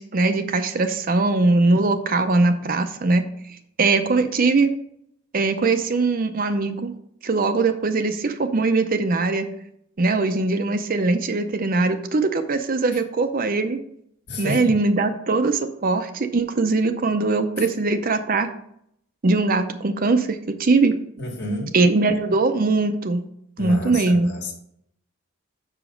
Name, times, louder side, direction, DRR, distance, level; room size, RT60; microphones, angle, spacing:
voice 1, 0.0-3.3 3.8-4.7 5.3-6.9 7.2-9.5 10.0-13.8 14.4-18.5 19.2-20.9 21.7-23.2 23.6-24.3, right 3 dB, 40° right, 8 dB, 0.6 m, -21 dB
voice 2, 14.3-14.8 17.6-17.7 21.2-21.7 23.6-24.5, left 1 dB, 50° left, 2 dB, 1.7 m, -30 dB
6.8 x 4.9 x 5.2 m, 0.71 s
head